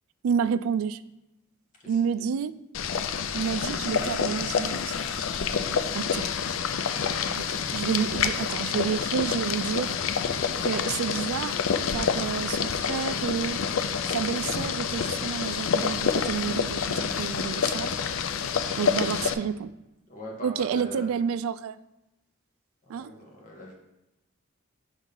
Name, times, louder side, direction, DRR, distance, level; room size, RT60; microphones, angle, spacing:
voice 1, 0.2-1.0 1.9-2.5 3.3-5.0 5.9-6.3 7.4-10.0 10.6-11.6 11.9-13.6 14.1-17.9 18.8-19.7 20.4-21.8 22.9-23.1, right 7 dB, 80° right, 16 dB, 0.3 m, -29 dB
voice 2, 1.8-2.3 20.1-21.1 22.9-23.7, left 1 dB, 40° left, -2 dB, 1.6 m, -41 dB
Boiling, 2.7-19.3, left 6 dB, 70° left, 0.4 m, -28 dB
6.0 x 3.8 x 5.4 m, 0.93 s
head